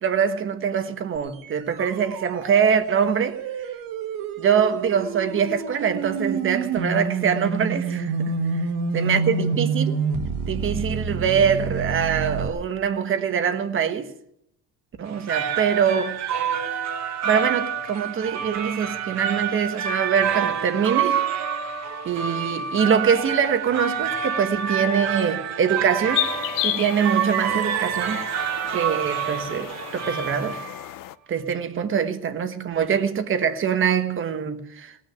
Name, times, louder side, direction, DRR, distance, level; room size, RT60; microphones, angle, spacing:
voice 1, 0.0-3.7 4.4-8.1 8.9-10.0 10.5-14.1 15.0-16.2 17.2-21.2 22.0-30.6 31.3-35.0, right 7 dB, 40° right, 1.2 m, -24 dB
sound 1, 1.1-12.5, right 4 dB, 80° right, 1.7 m, -28 dB
sound 2, 15.1-30.9, right 7 dB, 55° right, 1.7 m, -28 dB
sound 3, 26.1-31.1, left 15 dB, 80° left, 0.6 m, -32 dB
19.0 x 6.3 x 9.2 m
cardioid pair, 140°, 33 cm